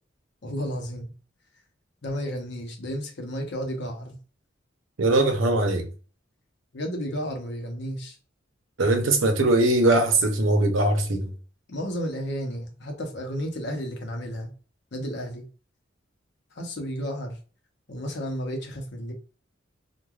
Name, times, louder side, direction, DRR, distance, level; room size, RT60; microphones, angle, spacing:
voice 1, 0.4-1.1 2.0-4.2 6.7-8.2 11.7-14.5 14.9-15.5 16.5-17.4 17.9-19.1, equal, 60° left, 0.8 m, -32 dB
voice 2, 5.0-5.9 8.8-11.3, right 2 dB, 80° right, 0.7 m, -21 dB
3.2 x 2.2 x 2.3 m
head